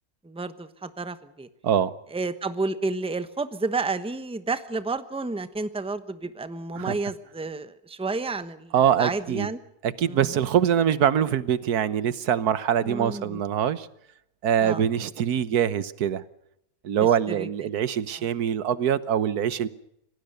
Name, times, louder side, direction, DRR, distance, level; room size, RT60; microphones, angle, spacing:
voice 1, 0.2-1.5 2.1-9.6 10.1-10.3 12.8-13.4 14.6-14.9 17.3-17.5, right 3 dB, 5° right, 12 dB, 0.9 m, -31 dB
voice 2, 8.7-9.5 9.8-13.9 14.4-16.2 16.8-19.7, right 9 dB, 85° right, 16 dB, 1.5 m, -24 dB
26.0 x 18.5 x 6.8 m, 0.77 s
omnidirectional pair, 1.6 m